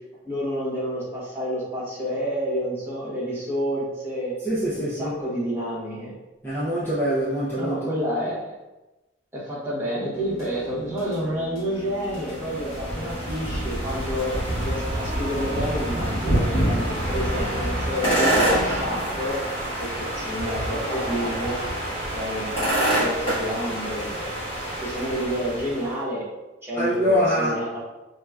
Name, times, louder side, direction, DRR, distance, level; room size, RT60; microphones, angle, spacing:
voice 1, 0.2-4.3 4.7-6.1 7.6-8.5 9.3-19.4 19.8-21.6 22.1-24.3 24.8-26.2 26.6-27.8, equal, 10° right, -9 dB, 1.0 m, -29 dB
voice 2, 4.4-5.1 6.4-7.9 26.7-27.6, equal, 10° left, -11 dB, 0.5 m, -24 dB
sound 1, 10.1-19.0, left 1 dB, 90° left, 0.6 m, -38 dB
sound 2, 11.9-25.9, right 1 dB, 30° left, 1.3 m, -27 dB
4.7 x 2.2 x 2.3 m, 1.1 s
head